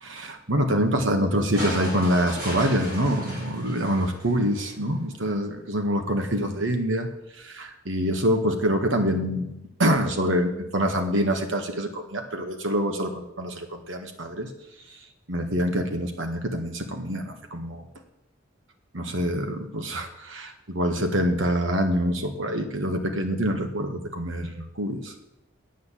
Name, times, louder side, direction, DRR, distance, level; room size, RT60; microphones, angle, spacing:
voice 1, 0.0-7.1 7.4-14.5 15.3-17.8 18.9-25.2, equal, 85° right, 5 dB, 1.7 m, -26 dB
sound 1, 1.6-4.9 6.2-6.3, equal, 50° right, 4.4 m, -36 dB
9.3 x 8.4 x 7.5 m, 0.88 s
head